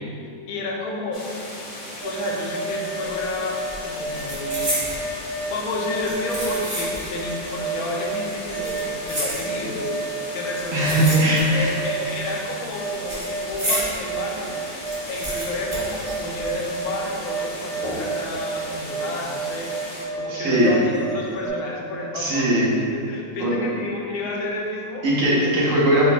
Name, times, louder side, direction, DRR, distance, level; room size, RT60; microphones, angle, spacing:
voice 1, 0.5-1.3 2.0-4.9 5.5-14.5 15.1-19.7 20.1-25.1, left 2 dB, 75° left, -1 dB, 1.1 m, -31 dB
sound 1, 1.1-20.0, left 1 dB, 40° left, 0.4 m, -37 dB
sound 2, 2.0-21.5, right 3 dB, 90° right, 1.9 m, -31 dB
sound 3, 3.1-3.4 3.6-5.1 5.8-7.2 7.5-7.6 8.4-9.9 10.5-11.7 12.0-14.0 14.4-14.5 14.7-16.8 17.0-17.1 17.8-18.3 18.7-18.9, equal, 40° right, 1.4 m, -31 dB
voice 2, 10.7-11.7 20.3-20.7 22.1-22.7 23.4-23.5 25.0-26.1, right 1 dB, 60° right, -6 dB, 1.2 m, -19 dB
4.4 x 2.1 x 4.1 m, 2.5 s
omnidirectional pair, 1.6 m